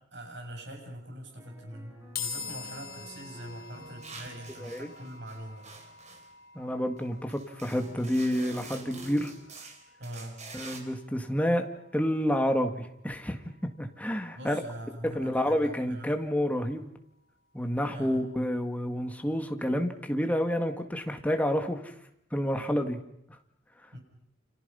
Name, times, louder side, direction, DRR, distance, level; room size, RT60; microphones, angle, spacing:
voice 1, 0.1-5.6 10.0-10.4 14.4-16.1 17.9-18.2 23.9-24.0, right 1 dB, 65° right, 1 dB, 7.6 m, -43 dB
sound 1, 1.4-6.3 7.7-9.3, equal, 20° right, 5.7 m, -51 dB
sound 2, 2.2-15.5, left 6 dB, 55° left, 4.1 m, -46 dB
sound 3, 4.0-6.3 7.0-7.1 7.3-10.8, right 4 dB, 35° right, 3.9 m, -47 dB
voice 2, 4.6-4.9 6.6-9.3 10.5-11.7 11.9-14.6 15.0-16.9 17.5-21.9 22.3-23.0, equal, 10° left, 5 dB, 2.0 m, -29 dB
29.5 x 28.0 x 5.6 m, 0.76 s
head